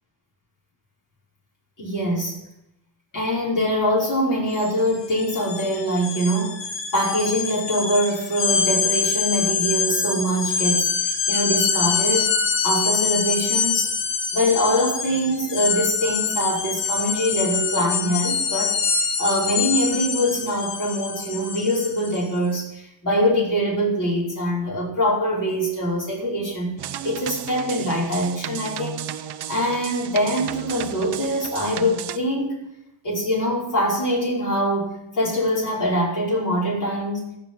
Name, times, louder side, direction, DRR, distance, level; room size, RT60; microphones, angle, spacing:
voice 1, 1.8-2.4 3.1-6.6 6.9-12.3 12.6-13.9 14.3-26.7 27.0-32.6 33.0-37.3, equal, 45° left, -4 dB, 5.3 m, -23 dB
sound 1, 4.5-4.7 5.0-22.2, left 5 dB, 75° left, 1.9 m, -25 dB
sound 2, 26.8-32.2, right 10 dB, 60° right, 0.9 m, -34 dB
15.0 x 5.6 x 8.2 m, 0.87 s
cardioid pair, 80°, 44 cm